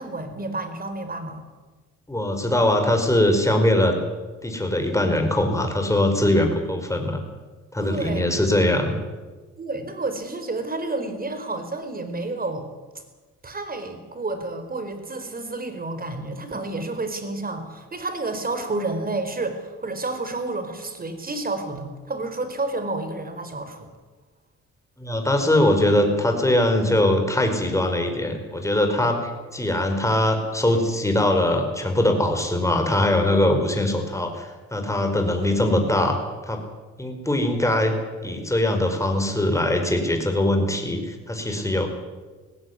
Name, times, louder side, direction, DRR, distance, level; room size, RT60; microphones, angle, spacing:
voice 1, 0.0-1.4 7.8-8.3 9.6-12.7 13.4-23.9, right 2 dB, 30° right, 8 dB, 4.3 m, -30 dB
voice 2, 2.1-4.0 4.4-7.2 7.7-8.9 25.0-36.6 37.0-37.9 38.2-41.9, left 1 dB, 10° left, 5 dB, 5.0 m, -22 dB
19.5 x 16.0 x 9.8 m, 1.3 s
cardioid pair, 90°, 30 cm